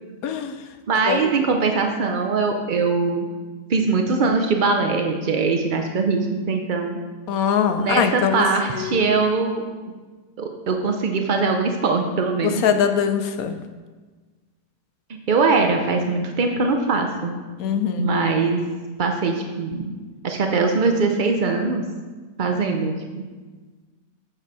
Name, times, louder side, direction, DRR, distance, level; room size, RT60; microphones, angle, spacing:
voice 1, 0.2-0.6 1.1-1.3 7.3-8.5 8.7-9.1 12.6-13.5 17.6-18.1, left 8 dB, 65° left, 8 dB, 1.1 m, -22 dB
voice 2, 0.9-3.3 3.7-7.0 7.8-9.6 10.4-12.6 15.1-17.3 18.0-18.6 19.0-19.9 20.2-21.8 22.4-23.3, right 4 dB, 75° right, 4 dB, 0.4 m, -22 dB
8.4 x 7.0 x 4.8 m, 1.4 s
omnidirectional pair, 1.8 m